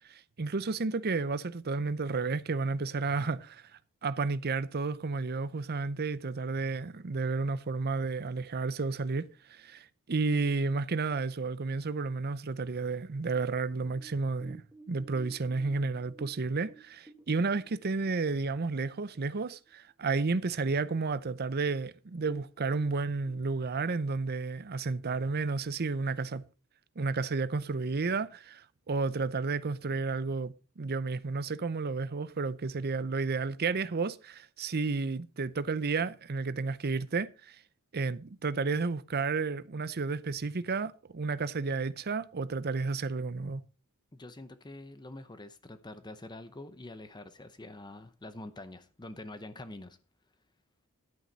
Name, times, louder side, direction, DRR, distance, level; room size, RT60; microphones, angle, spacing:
voice 1, 0.1-3.6 4.0-14.6 14.9-26.5 27.0-37.6 37.9-43.6, right 4 dB, 45° right, 0.6 m, -32 dB
sound 1, 13.9-18.7 19.1-19.2 19.6-20.1 20.5-20.6 21.3-21.4 21.6-21.8 22.1-23.3, right 3 dB, 5° right, 1.7 m, -54 dB
voice 2, 44.1-50.0, left 2 dB, 20° left, 0.8 m, -46 dB
11.0 x 9.5 x 4.1 m
head